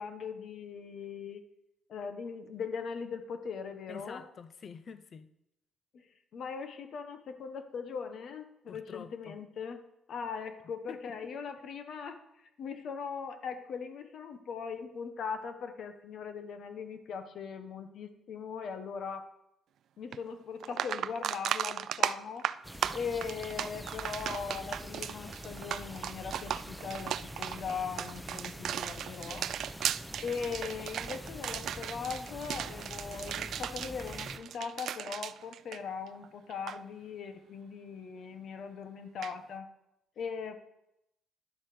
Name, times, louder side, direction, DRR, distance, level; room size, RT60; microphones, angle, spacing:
voice 1, 0.0-1.4 1.9-4.2 5.9-6.0 6.3-19.2 20.0-22.5 22.9-29.5 30.2-39.7 40.2-40.6, left 6 dB, 65° left, 1.2 m, -40 dB
voice 2, 3.9-5.3 8.7-9.4 10.9-11.1, left 6 dB, 45° left, 0.6 m, -47 dB
sound 1, 20.1-20.2 20.6-36.2 36.5-36.8 39.2-39.3, right 10 dB, 70° right, 0.3 m, -36 dB
sound 2, 22.6-34.4, equal, ahead, 1.0 m, -45 dB
11.0 x 7.5 x 5.1 m
cardioid pair, 90°, 0 cm